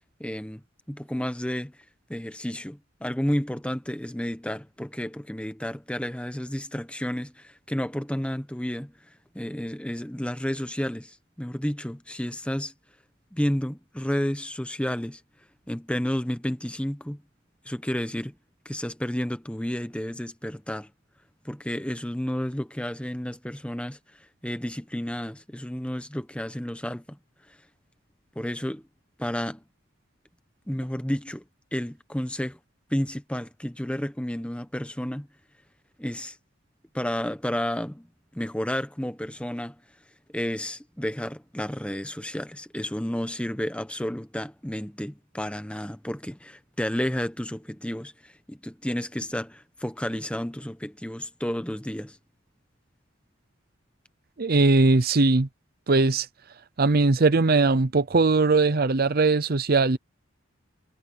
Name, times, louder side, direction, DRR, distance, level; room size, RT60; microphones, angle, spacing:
voice 1, 0.2-0.6 0.9-1.8 2.1-8.9 9.3-12.7 13.3-15.2 15.7-17.2 17.6-18.4 18.6-20.9 21.4-24.0 24.4-27.2 28.3-28.8 29.2-29.6 30.7-31.4 31.7-32.6 32.9-35.3 36.0-36.4 36.9-38.1 38.3-39.8 40.3-52.2, equal, 5° left, 1.1 m, -31 dB
voice 2, 54.4-55.5 55.9-56.3 56.8-60.0, right 3 dB, 50° right, 0.7 m, -20 dB
head